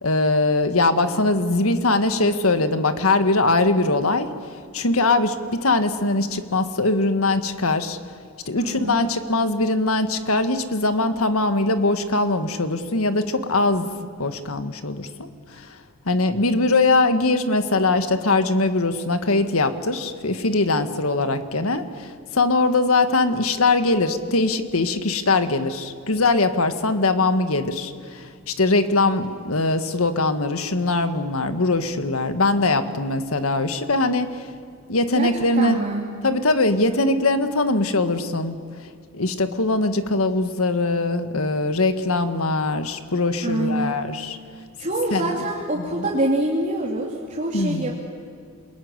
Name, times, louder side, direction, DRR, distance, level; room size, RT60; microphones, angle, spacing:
voice 1, 0.0-4.3 4.7-8.0 8.5-13.9 14.2-15.8 16.1-34.4 34.9-35.8 36.2-38.6 39.1-44.4 45.1-45.4 45.8-46.1 47.5-48.0, left 2 dB, 75° left, 9 dB, 1.7 m, -21 dB
voice 2, 8.6-9.0 35.2-35.3 35.6-36.0 43.4-44.0 44.8-48.0, right 1 dB, 35° right, -3 dB, 2.8 m, -25 dB
28.0 x 21.0 x 9.7 m, 2.3 s
head